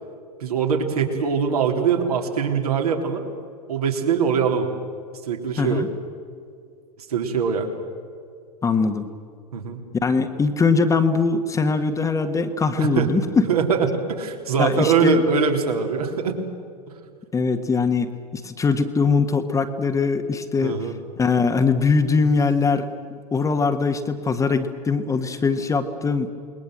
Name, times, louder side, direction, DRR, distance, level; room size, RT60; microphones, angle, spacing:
voice 1, 0.4-3.2 3.7-4.7 5.3-5.8 7.1-7.7 9.5-9.8 12.8-16.4 16.9-17.0 20.6-20.9, right 6 dB, 65° right, 2 dB, 3.8 m, -22 dB
voice 2, 5.6-5.9 8.6-9.1 10.0-13.4 14.6-15.2 17.3-20.9 21.2-26.3, left 4 dB, 15° left, 7 dB, 1.6 m, -21 dB
28.5 x 21.0 x 7.9 m, 2.3 s
figure-of-eight pair, 95°, 20 cm